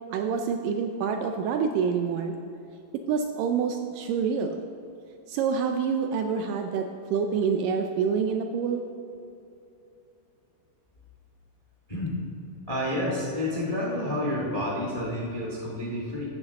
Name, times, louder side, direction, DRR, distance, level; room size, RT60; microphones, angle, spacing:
voice 1, 0.1-2.4 2.9-4.6 5.3-8.8, right 6 dB, 80° right, 5 dB, 2.0 m, -27 dB
voice 2, 11.9-12.3 12.7-16.2, left 1 dB, 60° left, -4 dB, 0.3 m, -29 dB
14.0 x 8.6 x 3.6 m, 2.7 s
omnidirectional pair, 4.3 m